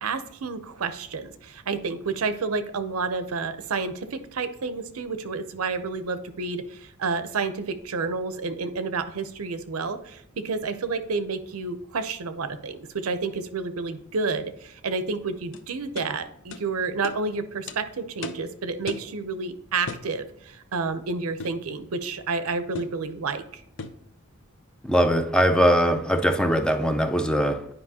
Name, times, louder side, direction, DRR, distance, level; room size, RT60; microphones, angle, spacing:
voice 1, 0.0-23.6, right 4 dB, 80° right, 0.6 m, -30 dB
sound 1, 15.5-15.6 16.0-16.1 16.5-16.6 17.0-17.2 17.7-17.8 18.2-18.5 18.9-19.1 19.9-20.1 21.4-21.6 22.7-23.0 23.8-24.0, left 4 dB, 60° left, 0.6 m, -36 dB
voice 2, 24.8-27.7, equal, 5° left, 0.4 m, -21 dB
9.6 x 5.1 x 2.8 m
head